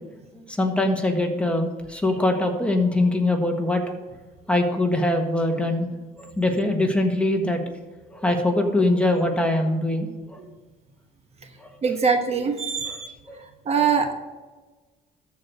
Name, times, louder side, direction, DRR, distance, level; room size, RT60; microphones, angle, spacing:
voice 1, 0.6-3.8 4.5-5.9 6.4-7.6 8.2-10.1 13.3-13.4 13.8-13.9, left 1 dB, 5° left, 3 dB, 1.5 m, -22 dB
voice 2, 11.8-13.1 13.7-14.1, right 6 dB, 40° right, 5 dB, 1.1 m, -22 dB
13.5 x 4.7 x 6.5 m, 1.2 s
cardioid pair, 110°, 17 cm